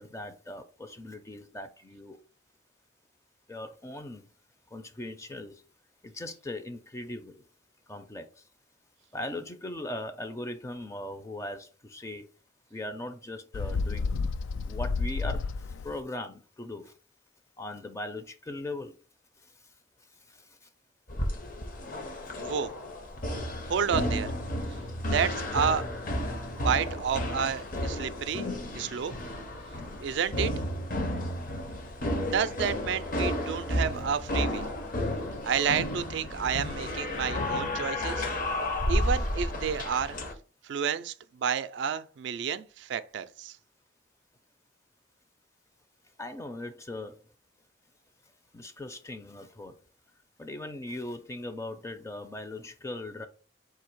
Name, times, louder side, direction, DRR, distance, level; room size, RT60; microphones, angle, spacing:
voice 1, 0.0-2.2 3.5-4.3 4.7-5.6 6.0-7.4 7.9-8.4 9.1-12.3 12.7-14.2 14.7-16.9 17.6-18.9 19.4-19.5 20.3-20.7 23.5-23.6 46.2-47.2 48.5-49.7 50.4-53.3, left 1 dB, 15° left, 0.4 m, -39 dB
Bird, 13.5-16.0, left 4 dB, 85° left, 0.3 m, -31 dB
sound 1, 21.1-40.3, left 1 dB, 45° left, 0.7 m, -32 dB
voice 2, 22.4-22.7 23.7-24.3 25.1-25.9 26.6-29.1 30.0-30.5 32.2-34.7 35.4-38.2 38.9-40.2 40.6-43.6, right 7 dB, 70° right, 0.3 m, -30 dB
3.9 x 2.7 x 4.5 m
head